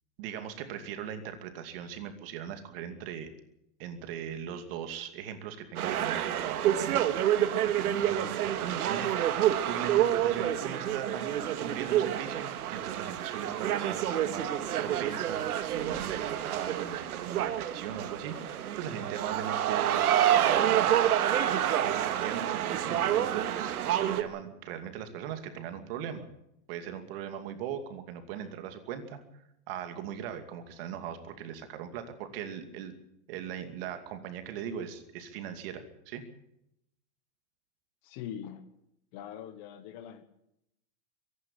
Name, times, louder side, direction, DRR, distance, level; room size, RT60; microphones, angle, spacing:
voice 1, 0.2-3.3 3.8-7.0 7.6-9.3 9.6-11.2 11.6-21.1 21.3-26.3 26.7-29.2 29.7-32.9 33.3-36.2, right 9 dB, 40° right, 8 dB, 2.6 m, -39 dB
sound 1, 5.8-24.2, right 11 dB, 85° right, 2.1 m, -28 dB
voice 2, 38.0-38.6 39.1-40.2, left 9 dB, 30° left, 11 dB, 1.2 m, -42 dB
24.0 x 11.0 x 9.9 m, 0.81 s
supercardioid pair, 175°, 43 cm